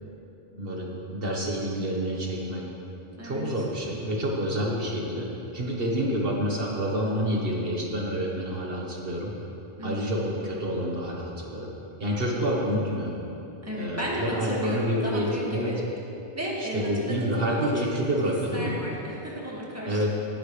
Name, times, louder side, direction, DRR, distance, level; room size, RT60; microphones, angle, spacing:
voice 1, 0.5-2.6 3.2-5.3 5.5-9.3 9.8-11.7 12.0-13.1 13.7-15.7 16.7-18.7 19.8-20.2, equal, 65° right, -2 dB, 1.6 m, -28 dB
voice 2, 3.1-3.5 9.8-10.1 13.6-15.8 16.3-20.0, equal, 15° right, -5 dB, 2.0 m, -34 dB
18.5 x 10.5 x 3.3 m, 2.9 s
omnidirectional pair, 1.0 m